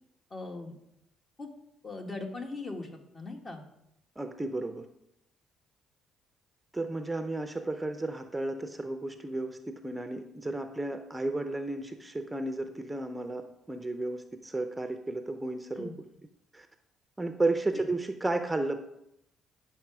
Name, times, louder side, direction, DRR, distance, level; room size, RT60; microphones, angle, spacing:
voice 1, 0.3-0.7 1.4-1.5 1.8-2.9 3.1-3.6 15.8-15.9 17.7-17.8, left 3 dB, 35° left, 3 dB, 1.9 m, -39 dB
voice 2, 4.2-4.9 6.7-15.9 16.5-16.7 17.2-18.8, right 2 dB, 10° right, 7 dB, 0.7 m, -33 dB
9.8 x 6.0 x 4.8 m, 0.81 s
cardioid pair, 80°, 0 cm